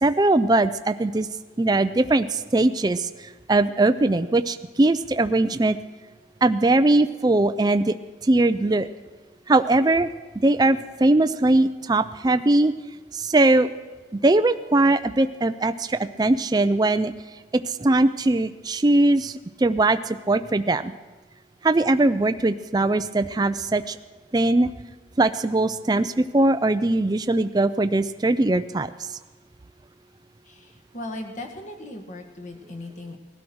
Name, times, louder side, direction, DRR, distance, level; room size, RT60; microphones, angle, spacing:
voice 1, 0.0-1.3 1.6-5.8 6.4-7.9 8.2-8.9 9.5-10.1 10.4-12.7 13.1-13.7 14.2-17.1 17.5-20.9 21.6-24.0 24.3-24.7 25.2-29.1, right 2 dB, 20° right, 10 dB, 0.4 m, -20 dB
voice 2, 30.4-33.2, left 1 dB, 40° left, 3 dB, 1.8 m, -37 dB
19.0 x 12.0 x 6.2 m, 1.3 s
head